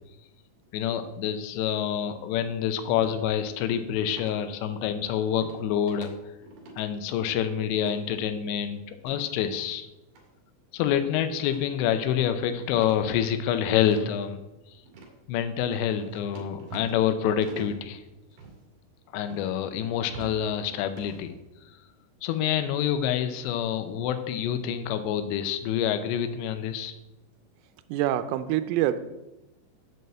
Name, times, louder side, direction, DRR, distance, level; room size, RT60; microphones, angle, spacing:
voice 1, 0.7-6.1 6.8-9.9 10.7-14.4 15.3-18.0 19.1-21.3 22.2-26.9, left 9 dB, 85° left, 9 dB, 2.5 m, -27 dB
sound 1, 3.0-3.2 4.1-4.4 5.4-5.6 5.9-6.1 6.4-6.8 7.8-8.0 9.0-9.3 10.1-10.2 11.5-11.7 12.0-12.1 12.7-14.3 14.9-15.1 15.7-17.1 17.4-17.8 18.3-18.6 19.3-19.5 19.9-20.4 20.8-21.2, right 3 dB, 55° right, 2.6 m, -44 dB
voice 2, 27.9-29.0, right 12 dB, 85° right, 11 dB, 3.1 m, -25 dB
7.6 x 5.5 x 7.6 m, 0.97 s
omnidirectional pair, 5.8 m